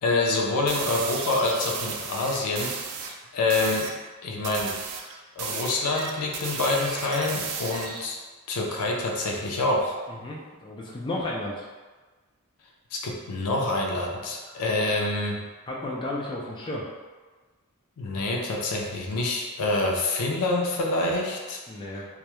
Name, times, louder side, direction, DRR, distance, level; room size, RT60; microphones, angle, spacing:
voice 1, 0.0-3.0 3.3-3.9 4.2-4.7 5.4-8.2 8.5-10.0 12.9-15.4 18.0-21.6, left 2 dB, 90° left, 0 dB, 0.4 m, -26 dB
sound 1, 0.7-3.1 3.5-4.0 4.4-8.1, right 5 dB, 85° right, 0.3 m, -34 dB
voice 2, 10.1-11.7 14.4-14.6 15.7-16.9 21.7-22.1, left 1 dB, 20° left, -4 dB, 0.3 m, -33 dB
2.3 x 2.0 x 2.9 m, 1.3 s
head